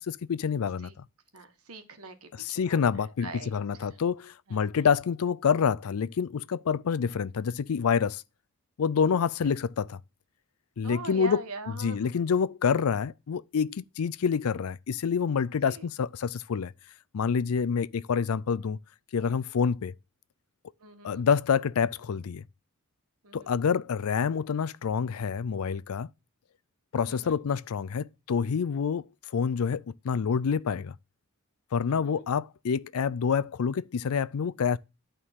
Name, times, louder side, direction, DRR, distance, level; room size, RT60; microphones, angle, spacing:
voice 1, 0.1-0.9 2.4-8.2 8.8-10.0 10.8-11.4 11.8-16.7 17.1-18.8 19.1-19.9 21.0-22.4 23.3-26.1 26.9-29.1 29.3-30.9 31.7-34.8, left 6 dB, 80° left, 0.4 m, -27 dB
voice 2, 1.3-2.8 3.2-3.9 4.5-4.9 10.8-12.3 15.7-15.9 20.8-21.2 23.2-23.5 27.0-27.4 31.9-32.2, right 2 dB, 85° right, 1.5 m, -43 dB
11.0 x 3.8 x 6.4 m
head